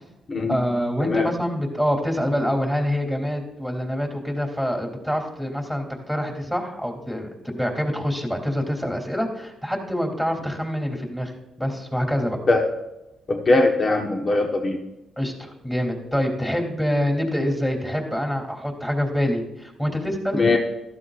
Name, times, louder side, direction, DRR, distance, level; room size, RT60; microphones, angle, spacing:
voice 1, 0.5-11.3 11.6-12.4 15.2-20.4, equal, 5° left, 2 dB, 3.2 m, -26 dB
voice 2, 13.3-14.8 20.3-20.6, left 2 dB, 40° left, 2 dB, 1.3 m, -20 dB
15.0 x 13.0 x 2.5 m, 0.96 s
cardioid pair, 90°, 0 cm